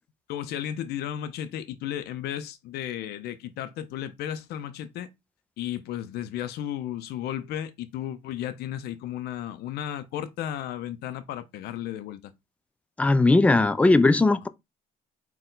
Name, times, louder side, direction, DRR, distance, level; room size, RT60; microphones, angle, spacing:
voice 1, 0.3-5.1 5.6-12.3, left 11 dB, 70° left, 0.5 m, -34 dB
voice 2, 13.0-14.5, left 2 dB, 10° left, 0.3 m, -19 dB
4.3 x 2.2 x 3.8 m
cardioid pair, 110°, 17 cm